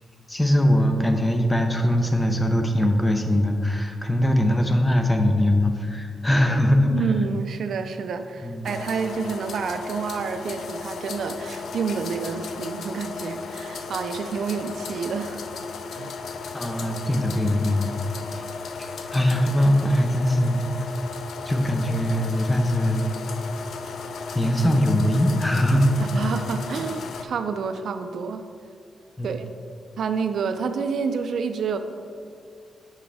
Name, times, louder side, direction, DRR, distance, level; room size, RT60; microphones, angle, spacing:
voice 1, 0.3-7.1 8.4-8.7 16.5-17.9 18.3-18.4 18.8-20.9 21.4-23.0 24.3-25.9 26.2-26.3 29.2-29.3, left 1 dB, 10° left, 4 dB, 0.6 m, -21 dB
voice 2, 6.9-15.4 15.9-16.1 26.0-28.4 29.2-29.5 30.0-31.8, right 5 dB, 65° right, 9 dB, 0.4 m, -29 dB
sound 1, 8.6-27.2, left 4 dB, 70° left, 0.4 m, -35 dB
7.4 x 5.8 x 3.4 m, 2.3 s
wide cardioid pair, 125°, 0 cm